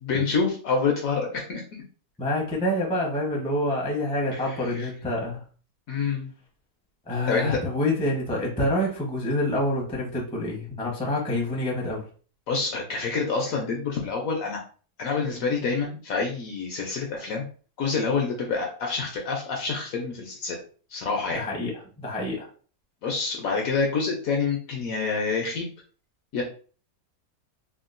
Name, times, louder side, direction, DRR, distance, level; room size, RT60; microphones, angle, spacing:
voice 1, 0.0-1.6 4.3-4.9 5.9-6.3 7.3-7.6 12.5-14.6 15.0-17.5 17.8-20.6 20.9-21.4 23.0-25.7 26.3-26.4, left 4 dB, 65° left, 1 dB, 0.9 m, -27 dB
voice 2, 2.2-5.4 7.1-12.1 21.3-22.5, left 1 dB, 5° left, -2 dB, 0.5 m, -27 dB
3.6 x 2.3 x 2.5 m, 0.40 s
omnidirectional pair, 1.8 m